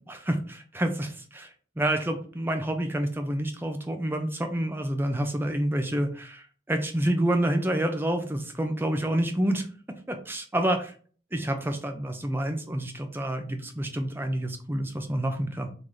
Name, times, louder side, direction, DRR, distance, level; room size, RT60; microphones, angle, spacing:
voice 1, 0.1-9.7 10.1-10.9 11.3-15.7, right 1 dB, 10° right, 5 dB, 0.6 m, -28 dB
3.8 x 2.8 x 4.8 m, 0.42 s
head